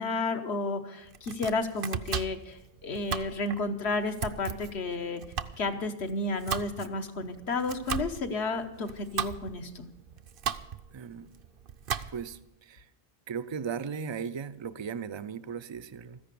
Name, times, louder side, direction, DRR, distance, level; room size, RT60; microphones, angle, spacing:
voice 1, 0.0-5.2 5.6-9.9, left 3 dB, 75° left, 7 dB, 1.3 m, -32 dB
Domestic sounds home sounds, 1.1-12.4, right 8 dB, 60° right, 0.8 m, -37 dB
voice 2, 10.9-11.3 12.1-12.8 13.3-16.2, right 6 dB, 40° right, 14 dB, 0.4 m, -37 dB
14.0 x 10.5 x 6.8 m, 0.87 s
omnidirectional pair, 1.1 m